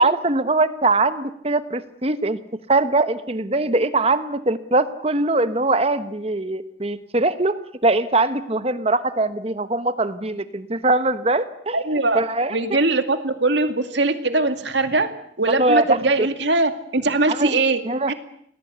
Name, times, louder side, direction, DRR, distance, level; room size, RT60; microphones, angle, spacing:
voice 1, 0.0-2.4 2.7-11.8 12.1-12.6 15.6-16.3 17.3-17.6 17.8-18.1, right 2 dB, 30° right, 12 dB, 1.1 m, -21 dB
voice 2, 11.7-12.2 12.5-15.1 15.4-17.8 18.1-18.2, right 2 dB, 70° right, 8 dB, 2.3 m, -21 dB
29.0 x 20.0 x 8.2 m, 0.68 s
head